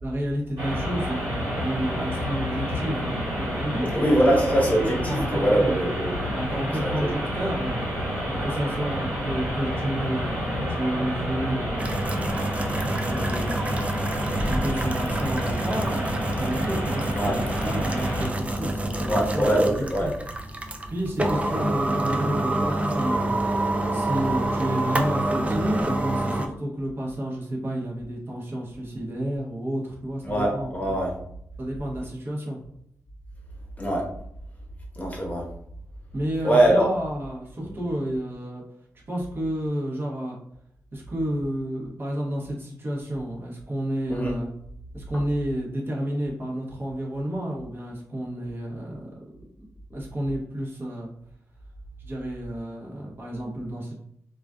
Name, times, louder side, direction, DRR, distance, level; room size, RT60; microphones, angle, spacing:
voice 1, 0.0-4.7 5.0-5.9 6.3-7.8 8.2-20.1 20.9-30.7 31.6-32.6 36.1-38.6 39.1-40.4 40.9-44.5 44.9-49.1 49.6-51.1 52.0-54.0, right 1 dB, 40° right, -3 dB, 0.8 m, -31 dB
sound 1, 0.6-18.3, equal, 85° right, 1.3 m, -29 dB
voice 2, 3.9-6.1 6.8-7.1 17.1-17.4 19.1-20.1 30.2-31.1 33.8-34.0 35.0-35.4 36.4-36.9 44.1-44.3, right 1 dB, 25° left, -2 dB, 0.9 m, -22 dB
sound 2, 11.8-26.5, right 1 dB, 20° right, 0.4 m, -27 dB
2.4 x 2.3 x 2.2 m, 0.70 s
cardioid pair, 55°, 6 cm